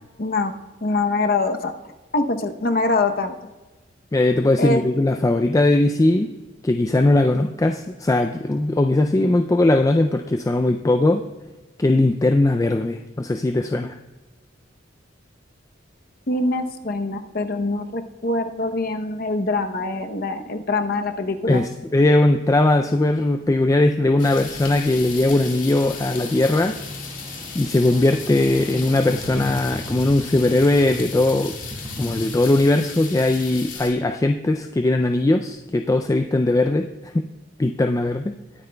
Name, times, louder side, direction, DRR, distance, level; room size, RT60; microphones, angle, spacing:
voice 1, 0.2-0.5 0.8-1.7 2.1-3.3 4.6-4.8 16.3-21.6, left 2 dB, 50° left, 6 dB, 0.8 m, -24 dB
voice 2, 4.1-6.3 6.6-11.2 11.8-14.0 21.5-26.8 27.5-31.6 32.0-37.3 37.6-38.3, left 2 dB, 15° left, 6 dB, 0.3 m, -19 dB
sound 1, 23.4-32.2, equal, 30° right, 1.7 m, -38 dB
sound 2, 24.2-33.9, left 5 dB, 75° left, 2.6 m, -36 dB
20.5 x 9.3 x 2.3 m, 1.2 s
head